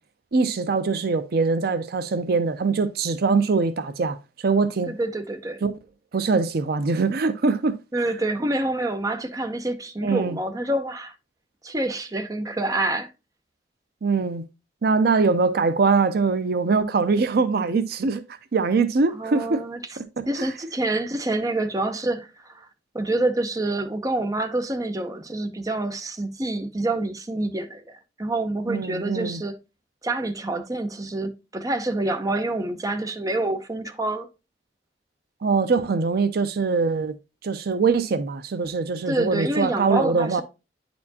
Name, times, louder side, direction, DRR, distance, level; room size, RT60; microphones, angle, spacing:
voice 1, 0.3-4.9 5.6-5.7 6.1-7.8 10.0-10.4 14.0-14.4 14.8-19.6 20.0-20.1 20.4-20.5 28.7-29.4 35.4-37.2 37.4-40.4, right 4 dB, 60° right, 0.5 m, -23 dB
voice 2, 4.9-5.6 7.9-11.1 11.6-13.1 19.1-19.8 20.3-22.3 22.5-22.7 22.9-29.6 30.0-34.3 39.1-40.4, right 2 dB, 20° right, 0.7 m, -27 dB
9.4 x 4.3 x 2.7 m
head